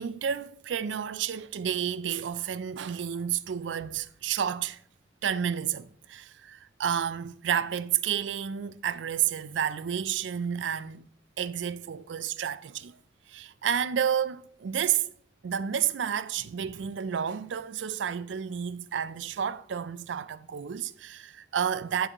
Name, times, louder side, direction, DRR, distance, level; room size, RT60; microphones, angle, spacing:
voice 1, 0.0-4.8 5.2-11.1 11.4-13.0 13.3-15.1 15.4-22.1, right 8 dB, 75° right, 0.4 m, -30 dB
12.0 x 6.7 x 2.9 m
head